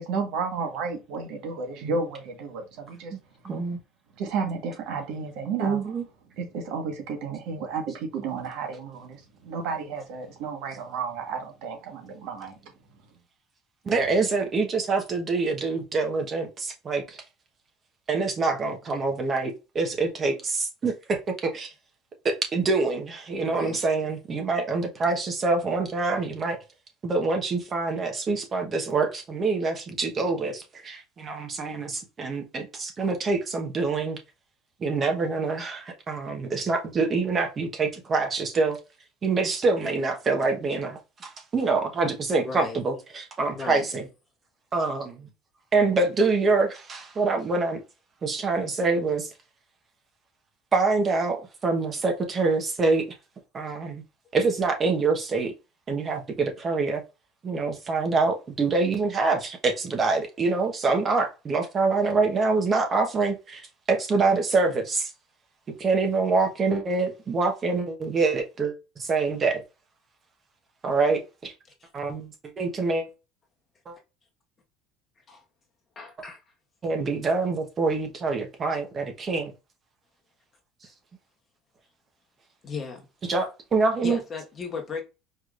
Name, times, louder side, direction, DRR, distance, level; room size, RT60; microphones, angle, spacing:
voice 1, 0.0-3.1 4.2-5.8 6.4-12.5, right 5 dB, 70° right, 1.4 m, -32 dB
voice 2, 3.4-3.8 5.6-6.0 13.8-17.2 18.1-21.7 22.2-26.6 27.0-34.2 34.8-38.8 39.2-44.0 44.7-45.3 45.7-47.8 48.2-49.3 50.7-53.1 53.5-54.0 54.3-55.5 55.9-57.0 57.4-65.1 65.8-69.6 70.8-71.5 71.9-73.1 73.9-74.0 76.8-79.5 83.3-84.2, right 3 dB, 30° right, 1.0 m, -25 dB
voice 3, 23.4-23.8 42.4-42.8 43.5-43.9 71.8-71.9 75.3-75.4 75.9-76.4 82.6-83.0 84.0-85.0, left 5 dB, 30° left, 1.4 m, -35 dB
4.7 x 3.1 x 2.5 m
cardioid pair, 120°, 0 cm